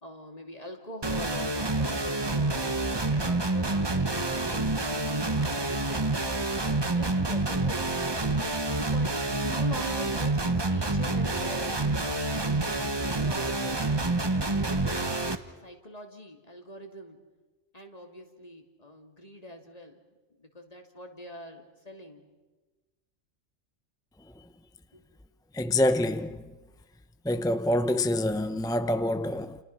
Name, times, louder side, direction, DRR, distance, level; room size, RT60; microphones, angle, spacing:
voice 1, 0.0-6.3 6.9-7.9 8.7-12.0 12.6-13.9 14.5-15.1 15.6-17.2 17.7-20.0 20.4-22.3 24.9-25.0, left 1 dB, 30° left, 2.8 m, -43 dB
sound 1, 1.0-15.4, right 2 dB, 20° right, 1.1 m, -28 dB
voice 2, 25.5-26.4 27.2-29.6, left 1 dB, 5° left, 0.4 m, -26 dB
29.5 x 29.0 x 5.8 m
omnidirectional pair, 1.3 m